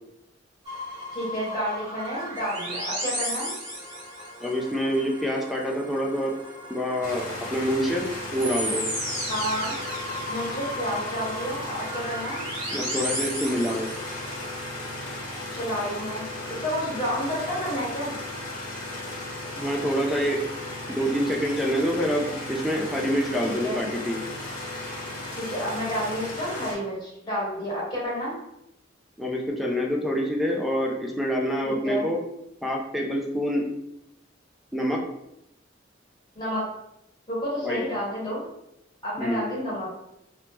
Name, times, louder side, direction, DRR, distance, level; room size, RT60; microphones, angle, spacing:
sound 1, 0.6-14.4, equal, 35° right, 1.4 m, -35 dB
voice 1, 1.1-3.5 9.3-9.7 10.3-12.4 15.5-16.2 16.5-18.1 23.4-23.8 25.3-28.3 31.6-32.1 36.3-36.7 37.3-38.4 39.0-39.9, equal, 25° left, -6 dB, 1.1 m, -30 dB
voice 2, 4.4-6.3 6.7-8.0 8.3-8.8 12.7-13.9 19.6-20.4 20.9-24.2 29.2-32.2 32.6-33.7 34.7-35.0 37.6-37.8 39.2-39.5, equal, ahead, 0 dB, 0.3 m, -26 dB
sound 2, 7.0-26.7, left 1 dB, 45° left, 0.9 m, -36 dB
3.0 x 2.0 x 3.2 m, 0.83 s
head